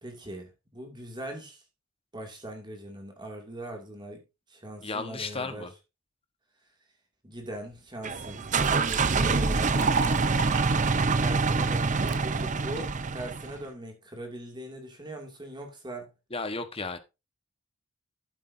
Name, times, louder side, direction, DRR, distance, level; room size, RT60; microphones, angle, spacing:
voice 1, 0.0-1.6 2.1-4.2 4.5-5.7 7.2-9.8 11.2-16.1, right 1 dB, 20° right, 2.4 m, -41 dB
voice 2, 4.8-5.7 16.3-17.0, left 3 dB, 25° left, 1.3 m, -34 dB
Liquid, 7.7-7.8 8.2-12.2 12.8-13.2, right 5 dB, 55° right, 1.5 m, -35 dB
sound 1, 8.0-13.6, right 4 dB, 35° right, 0.7 m, -26 dB
12.0 x 8.5 x 2.7 m
head